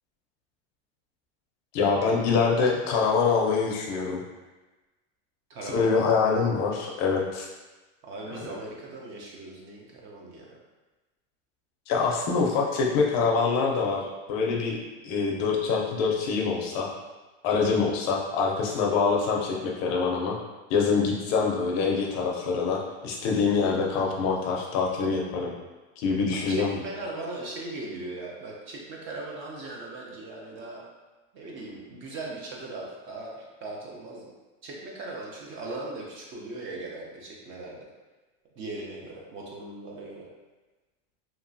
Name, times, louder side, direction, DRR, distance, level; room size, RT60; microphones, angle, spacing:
voice 1, 1.7-4.2 5.7-7.5 11.9-14.8 15.0-16.9 17.4-20.4 20.7-25.5 26.0-26.8, left 5 dB, 45° left, -1 dB, 0.5 m, -25 dB
voice 2, 5.5-6.2 8.0-10.6 26.3-30.8 31.3-34.3 34.6-37.9 38.6-40.3, right 2 dB, 35° right, -2 dB, 0.5 m, -39 dB
2.9 x 2.4 x 2.6 m, 1.2 s
supercardioid pair, 135°, 38 cm